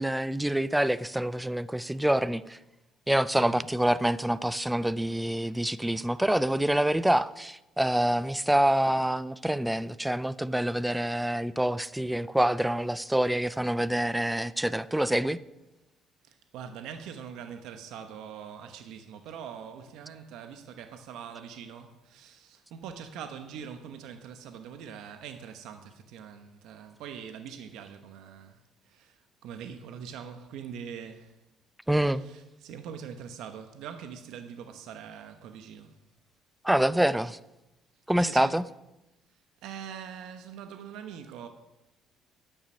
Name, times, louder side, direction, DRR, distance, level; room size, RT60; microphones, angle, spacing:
voice 1, 0.0-2.6 3.1-15.4 31.9-32.2 36.6-37.4 38.1-38.6, right 1 dB, 5° right, 0.4 m, -26 dB
voice 2, 3.3-3.6 16.2-31.4 32.1-36.0 38.2-38.6 39.3-41.5, right 7 dB, 75° right, 1.0 m, -43 dB
11.5 x 9.4 x 6.3 m
cardioid pair, 145°, 0 cm